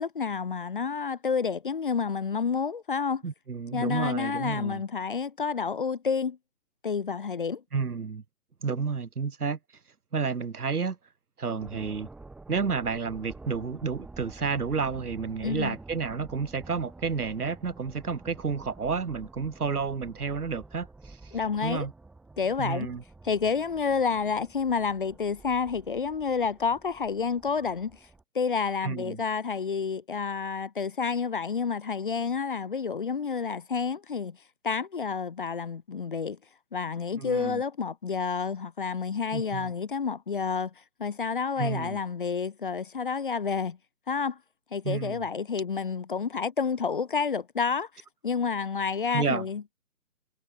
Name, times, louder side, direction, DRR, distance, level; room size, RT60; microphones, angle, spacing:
voice 1, 0.0-3.2 3.7-6.4 6.8-7.6 15.4-15.8 21.3-21.9 22.4-22.9 23.2-27.9 28.3-34.4 34.6-36.4 36.7-40.7 41.0-43.8 44.1-44.4 44.7-47.9 48.2-49.6, left 5 dB, 35° left, 1.2 m, -29 dB
voice 2, 3.2-4.8 7.7-8.2 8.6-9.6 10.1-11.0 11.4-12.1 12.5-21.9 22.6-23.0 28.8-29.2 37.1-37.6 39.3-39.7 41.6-42.0 44.8-45.3 49.1-49.5, right 5 dB, 70° right, 3.2 m, -31 dB
sound 1, 11.6-28.2, right 3 dB, ahead, 2.7 m, -49 dB
hypercardioid pair, 170°, 47 cm